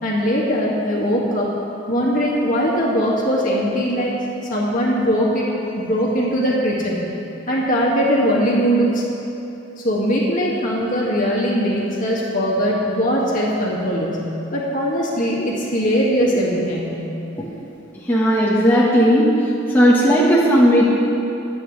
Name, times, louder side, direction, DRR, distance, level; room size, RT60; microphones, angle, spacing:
voice 1, 0.0-1.5 1.9-4.1 4.5-7.1 7.5-9.0 9.8-17.0, equal, 40° left, -5 dB, 2.3 m, -20 dB
voice 2, 18.0-19.3 19.7-20.9, equal, 10° left, -8 dB, 1.5 m, -15 dB
24.0 x 9.0 x 3.4 m, 2.9 s
head